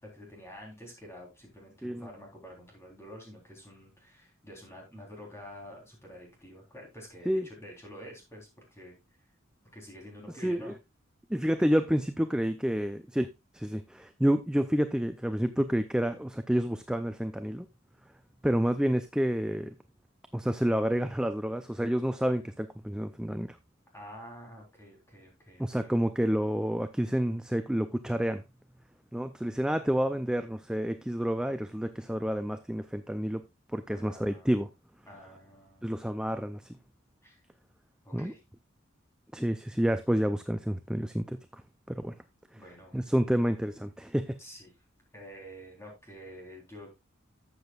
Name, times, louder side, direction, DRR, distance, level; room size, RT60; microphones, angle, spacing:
voice 1, 0.0-9.0 9.7-10.7 23.9-25.9 33.9-34.5 35.1-36.0 37.2-37.4 38.0-38.4 42.5-43.1 44.4-44.7 45.1-46.9, equal, 15° left, 3.6 m, -48 dB
voice 2, 10.4-10.7 11.3-17.7 18.4-19.8 20.3-23.6 25.6-28.4 29.1-33.4 33.7-34.7 35.8-36.8 38.1-38.3 39.3-41.4 41.9-42.2 42.9-44.4, equal, 5° right, 0.4 m, -29 dB
12.0 x 7.9 x 2.4 m
head